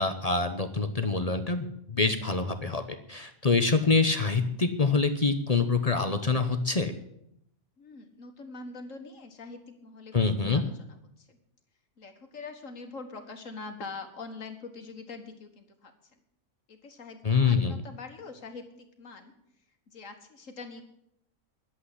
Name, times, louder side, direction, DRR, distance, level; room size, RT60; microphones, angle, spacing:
voice 1, 0.0-2.8 3.1-6.9 10.1-10.6 17.2-17.7, left 4 dB, 30° left, 8 dB, 0.8 m, -25 dB
voice 2, 7.8-10.1 10.4-11.4 12.0-15.9 16.7-19.3 19.9-20.8, left 4 dB, 65° left, 6 dB, 1.9 m, -44 dB
11.5 x 8.0 x 9.8 m, 0.76 s
omnidirectional pair, 1.5 m